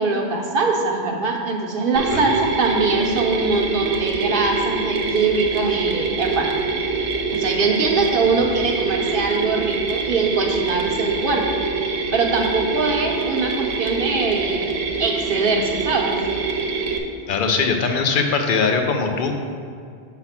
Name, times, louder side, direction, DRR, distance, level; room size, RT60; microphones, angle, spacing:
voice 1, 0.0-6.5 7.3-11.6 12.1-16.2, right 3 dB, 55° right, 1 dB, 1.0 m, -22 dB
Mechanisms, 2.0-17.0, right 4 dB, 90° right, 1.1 m, -25 dB
voice 2, 17.3-19.5, left 4 dB, 55° left, 4 dB, 0.8 m, -21 dB
6.8 x 4.1 x 5.8 m, 2.3 s
omnidirectional pair, 1.1 m